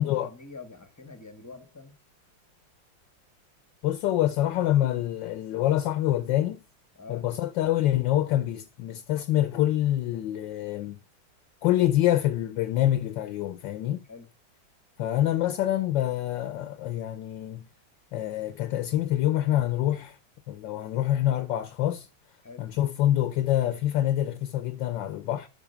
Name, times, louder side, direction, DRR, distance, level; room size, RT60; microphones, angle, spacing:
voice 1, 0.0-1.9 6.9-7.3 14.1-14.3 22.4-22.7, left 4 dB, 15° left, 0.8 m, -45 dB
voice 2, 3.8-6.6 7.1-11.0 11.6-14.0 15.0-17.7 18.1-20.2 20.5-22.1 22.6-25.5, left 13 dB, 70° left, 1.3 m, -26 dB
12.0 x 4.3 x 6.9 m
omnidirectional pair, 2.3 m